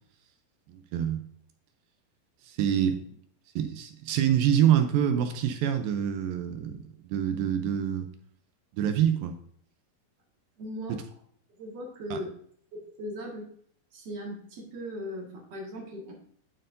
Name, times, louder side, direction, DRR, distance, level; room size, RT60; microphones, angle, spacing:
voice 1, 0.7-1.2 2.4-3.0 3.6-8.1 8.7-9.3 12.1-12.2, right 9 dB, 80° right, 7 dB, 2.3 m, -26 dB
voice 2, 10.6-11.0 11.6-12.3 12.7-13.4 13.9-16.1, equal, 50° right, -2 dB, 2.5 m, -38 dB
12.5 x 4.5 x 2.6 m, 0.62 s
omnidirectional pair, 4.3 m